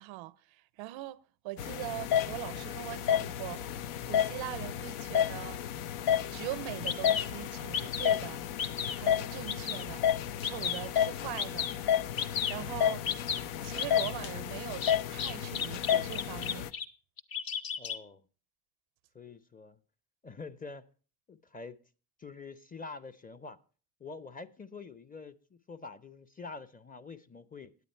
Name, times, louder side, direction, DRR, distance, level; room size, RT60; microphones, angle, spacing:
voice 1, 0.0-3.6 4.1-5.6 6.3-8.4 9.0-10.0 10.4-11.7 12.5-13.1 13.6-16.8, right 17 dB, 70° right, 0.6 m, -41 dB
sound 1, 1.6-16.7, left 10 dB, 80° left, 0.7 m, -32 dB
Bird vocalization bird call bird song, 6.4-6.5 6.9-7.3 7.7-8.2 8.6-9.0 9.5-9.9 10.4-10.9 11.4-11.7 12.2-12.6 13.0-13.4 13.8-14.1 14.8-16.9 17.2-18.0, left 7 dB, 45° left, 0.8 m, -33 dB
voice 2, 17.8-18.3 19.1-19.8 20.2-20.9 21.3-21.8 22.2-23.6 24.0-27.8, left 4 dB, 15° left, 0.5 m, -46 dB
9.5 x 8.8 x 4.3 m
supercardioid pair, 65°, 49 cm